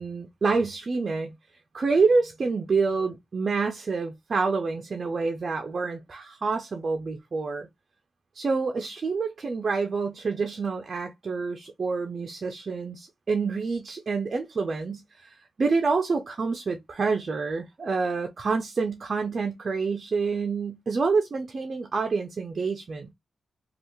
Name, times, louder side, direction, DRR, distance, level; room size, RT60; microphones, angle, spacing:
voice 1, 0.0-1.3 1.7-7.7 8.3-23.1, right 4 dB, 45° right, 0.6 m, -27 dB
3.3 x 2.4 x 3.1 m
wide cardioid pair, 110°, 0 cm